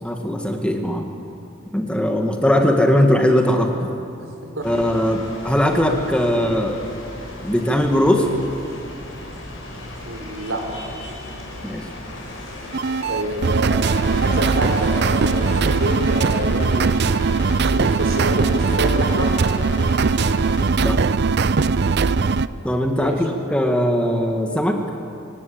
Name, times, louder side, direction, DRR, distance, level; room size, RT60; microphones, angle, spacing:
voice 1, 0.0-1.1 1.7-3.9 4.6-6.8 7.4-8.3 11.6-11.8 20.8-21.0 22.6-24.8, equal, 5° left, 3 dB, 1.8 m, -19 dB
sound 1, 4.6-16.4, left 1 dB, 75° left, 6.7 m, -36 dB
voice 2, 10.0-10.6 13.0-17.0 17.7-19.3 22.9-23.2, right 1 dB, 75° right, 3 dB, 4.1 m, -27 dB
sound 2, 12.7-22.5, right 4 dB, 60° right, 0.6 m, -20 dB
sound 3, 13.8-20.6, left 3 dB, 60° left, 3.3 m, -37 dB
26.0 x 18.5 x 8.6 m, 2.5 s
head